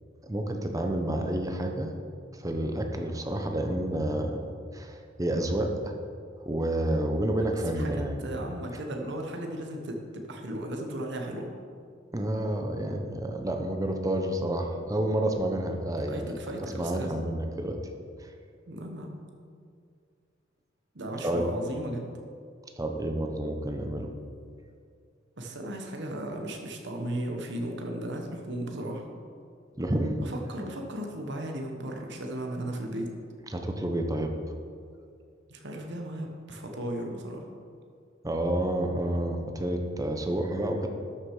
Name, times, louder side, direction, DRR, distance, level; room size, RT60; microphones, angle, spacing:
voice 1, 0.2-1.9 2.3-4.4 4.7-5.9 6.4-8.4 12.1-16.3 16.6-17.8 18.2-18.3 21.2-21.4 22.8-24.1 29.7-30.2 33.5-34.3 38.2-40.9, right 1 dB, 20° right, 4 dB, 0.9 m, -29 dB
voice 2, 8.2-11.5 16.1-17.2 18.7-19.2 20.9-22.1 25.4-29.1 30.2-33.1 35.5-37.5, right 1 dB, 60° right, 2 dB, 1.3 m, -35 dB
12.5 x 6.5 x 4.8 m, 2.3 s
head